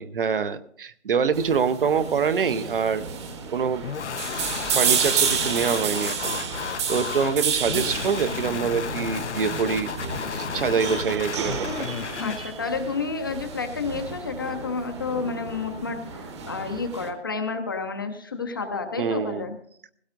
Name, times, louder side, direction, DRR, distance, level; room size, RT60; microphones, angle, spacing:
voice 1, 0.0-3.8 4.7-6.4 6.9-9.9 10.3-12.5 19.0-19.5, right 6 dB, 50° right, 13 dB, 0.8 m, -26 dB
sound 1, 1.3-17.1, right 6 dB, 25° right, 1.1 m, -31 dB
sound 2, 3.8-12.5, left 7 dB, 75° left, 0.7 m, -33 dB
voice 2, 12.2-19.6, left 4 dB, 20° left, 6 dB, 0.6 m, -30 dB
19.5 x 16.5 x 2.6 m, 0.63 s
hypercardioid pair, 155°, 35 cm